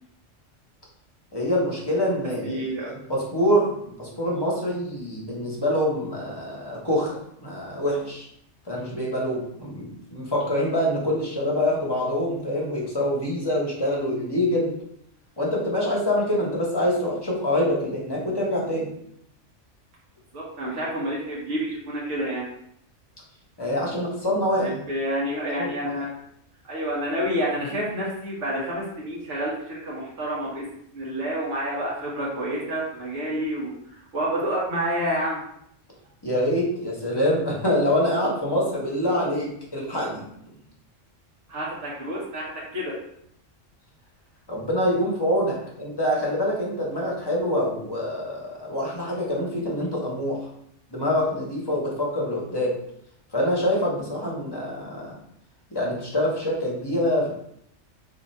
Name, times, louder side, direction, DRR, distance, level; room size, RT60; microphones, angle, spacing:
voice 1, 1.3-2.6 2.9-8.2 8.7-14.7 15.4-18.9 23.6-24.8 25.6-25.7 36.2-40.2 44.5-50.4 50.9-52.7 53.3-55.2 55.7-57.3, left 1 dB, 25° left, -4 dB, 0.7 m, -25 dB
voice 2, 2.4-2.9 20.3-22.5 24.5-26.1 26.7-30.7 30.9-35.4 41.5-42.9, equal, 75° right, -5 dB, 1.3 m, -29 dB
2.7 x 2.7 x 4.2 m, 0.72 s
omnidirectional pair, 1.3 m